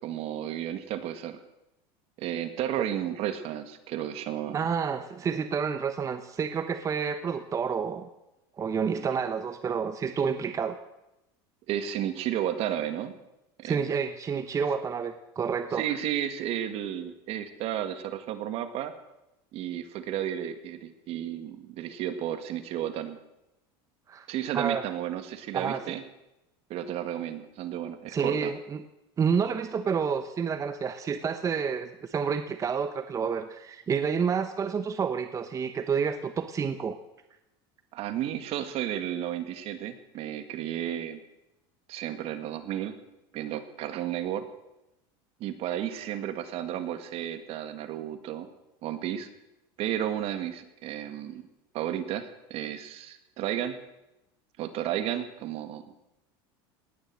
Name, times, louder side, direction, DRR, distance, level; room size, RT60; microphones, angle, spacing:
voice 1, 0.0-1.4 2.2-4.6 11.7-13.1 13.6-13.9 15.7-18.9 19.5-23.2 24.3-26.0 26.7-28.5 37.9-41.2 41.9-43.0 43.3-44.5 45.4-48.5 48.8-49.3 49.8-51.4 51.7-53.8 54.6-55.8, right 11 dB, 55° right, 10 dB, 1.8 m, -33 dB
voice 2, 4.5-8.1 8.6-10.8 13.6-15.9 24.1-24.3 24.5-24.9 25.5-25.9 28.1-28.8 29.2-37.0, right 6 dB, 25° right, 10 dB, 0.9 m, -29 dB
18.5 x 10.0 x 7.6 m, 0.92 s
supercardioid pair, 120°, 13 cm